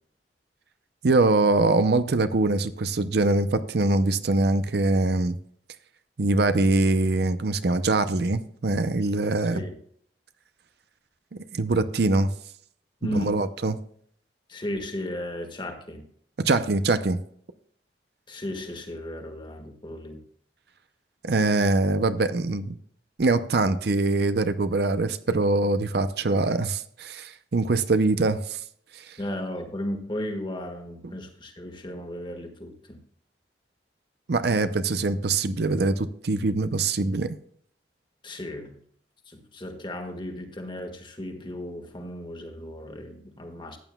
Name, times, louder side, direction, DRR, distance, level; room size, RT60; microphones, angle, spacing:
voice 1, 1.0-5.4 6.2-9.6 11.3-12.3 13.1-13.8 16.4-17.2 21.2-22.8 23.2-28.6 28.9-29.2 34.3-37.4, right 2 dB, 60° right, 11 dB, 0.6 m, -23 dB
voice 2, 13.0-13.4 14.5-16.0 18.3-20.2 29.2-33.0 38.2-38.8 39.3-43.8, equal, 25° left, 5 dB, 1.6 m, -35 dB
14.5 x 9.2 x 2.3 m, 0.62 s
head